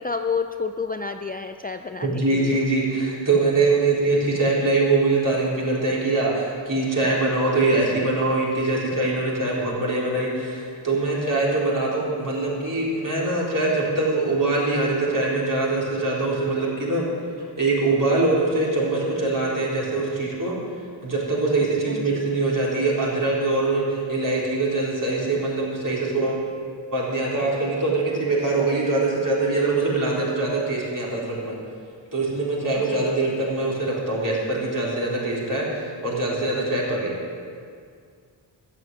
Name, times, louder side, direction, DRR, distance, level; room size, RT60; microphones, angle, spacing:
voice 1, 0.0-2.6 21.9-22.3 32.8-33.1, left 5 dB, 20° left, 6 dB, 0.4 m, -30 dB
voice 2, 2.0-17.1 17.6-20.6 21.0-26.5 26.9-31.6 32.1-37.1, right 2 dB, 45° right, -5 dB, 4.1 m, -23 dB
13.5 x 8.4 x 8.8 m, 2.2 s
wide cardioid pair, 125°, 45 cm